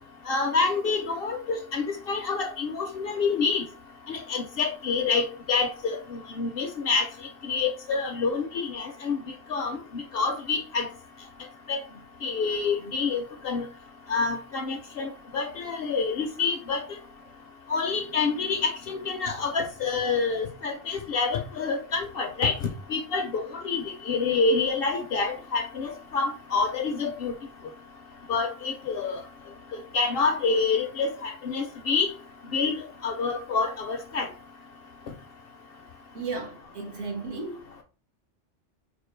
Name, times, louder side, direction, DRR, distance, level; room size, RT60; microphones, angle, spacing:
voice 1, 0.3-3.7 4.1-7.1 7.5-9.2 9.5-10.9 11.7-11.8 12.2-13.7 14.1-16.8 17.7-22.5 22.9-27.3 28.3-29.2 29.9-32.1 32.5-32.7 33.0-34.3, left 4 dB, 60° left, 0.7 m, -27 dB
voice 2, 36.1-37.6, right 4 dB, 75° right, 1.4 m, -34 dB
4.5 x 2.4 x 3.1 m
omnidirectional pair, 1.3 m